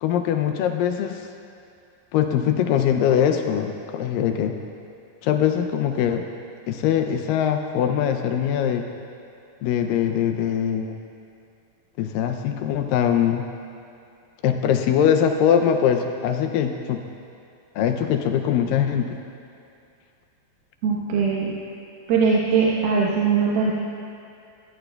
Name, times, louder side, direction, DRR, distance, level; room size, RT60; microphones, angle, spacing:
voice 1, 0.0-1.3 2.1-4.6 5.2-6.3 6.7-8.9 9.6-11.0 12.0-13.5 14.4-17.0 17.8-19.2, left 9 dB, 80° left, 6 dB, 2.1 m, -22 dB
voice 2, 20.8-21.5 22.1-23.7, right 5 dB, 80° right, -5 dB, 2.9 m, -20 dB
20.0 x 14.0 x 2.3 m, 2.5 s
omnidirectional pair, 4.3 m